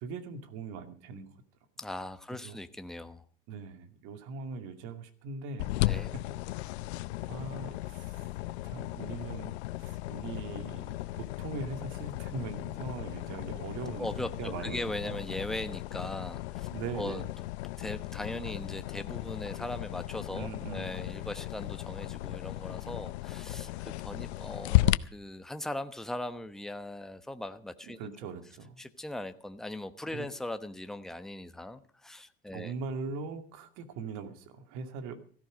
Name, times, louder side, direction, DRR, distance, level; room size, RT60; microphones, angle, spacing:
voice 1, 0.0-1.3 2.4-2.6 3.5-6.3 7.3-8.3 8.6-15.2 16.7-17.3 20.3-20.9 28.0-28.8 30.1-30.3 32.5-35.2, right 4 dB, 65° right, 8 dB, 2.4 m, -41 dB
voice 2, 1.8-3.2 5.8-6.1 14.0-16.7 17.0-17.2 17.8-28.1 28.8-32.7, left 1 dB, ahead, 9 dB, 1.0 m, -39 dB
sound 1, 5.6-25.0, left 16 dB, 85° left, 0.6 m, -35 dB
16.0 x 14.0 x 5.1 m, 0.43 s
supercardioid pair, 95°, 32 cm